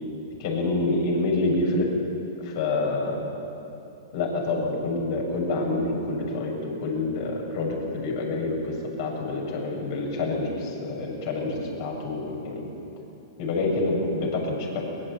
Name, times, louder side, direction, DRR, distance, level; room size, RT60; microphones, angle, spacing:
voice 1, 0.4-1.9 2.4-3.2 4.1-12.6 13.4-14.8, left 2 dB, 55° left, 0 dB, 7.3 m, -27 dB
22.5 x 21.5 x 8.8 m, 2.8 s
hypercardioid pair, 120°, 2 cm